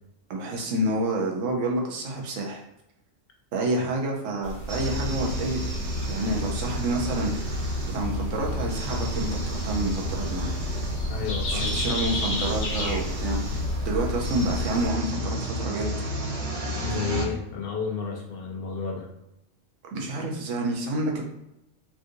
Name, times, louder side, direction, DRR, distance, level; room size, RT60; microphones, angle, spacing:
voice 1, 0.3-2.6 3.5-10.5 11.5-16.1 19.9-21.2, right 2 dB, 75° right, 0 dB, 1.0 m, -29 dB
sound 1, 4.4-14.9, left 1 dB, 75° left, 1.2 m, -34 dB
sound 2, 4.7-17.3, equal, 40° right, 0.5 m, -31 dB
voice 2, 11.1-11.8 16.8-19.1, left 5 dB, 60° left, 0 dB, 0.7 m, -32 dB
3.6 x 2.5 x 2.6 m, 0.86 s
omnidirectional pair, 1.3 m